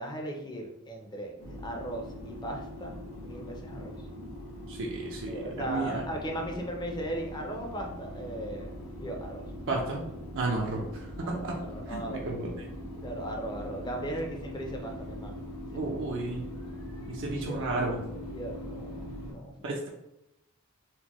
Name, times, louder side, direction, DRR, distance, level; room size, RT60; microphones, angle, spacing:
voice 1, 0.0-4.0 5.3-8.7 9.0-9.4 11.2-12.2 13.0-15.4 15.7-15.8 17.5-17.6 18.3-19.5, right 1 dB, 20° left, 1 dB, 0.5 m, -37 dB
sound 1, 1.4-19.3, left 1 dB, 80° left, 1.2 m, -41 dB
voice 2, 4.7-6.0 9.7-10.0 10.3-11.5 11.9-12.5 15.7-16.4 17.1-18.0 19.6-19.9, right 2 dB, 60° right, -1 dB, 0.5 m, -32 dB
4.3 x 2.1 x 3.0 m, 0.84 s
head